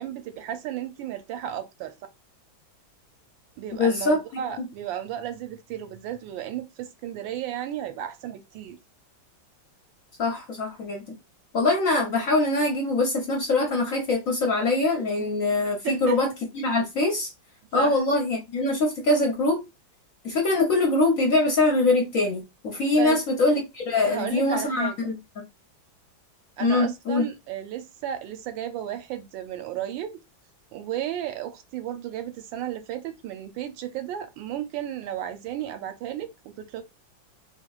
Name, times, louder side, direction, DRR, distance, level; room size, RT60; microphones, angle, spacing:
voice 1, 0.0-1.9 3.6-8.8 15.8-16.2 17.7-18.0 23.0-23.2 24.1-25.1 26.6-30.2 30.7-36.3 36.6-36.8, right 10 dB, 80° right, 1.3 m, -33 dB
voice 2, 3.7-4.7 10.2-11.0 11.5-17.3 17.7-19.6 20.2-25.2 26.6-27.3, left 2 dB, 55° left, 0.9 m, -23 dB
3.6 x 2.9 x 2.3 m
omnidirectional pair, 2.1 m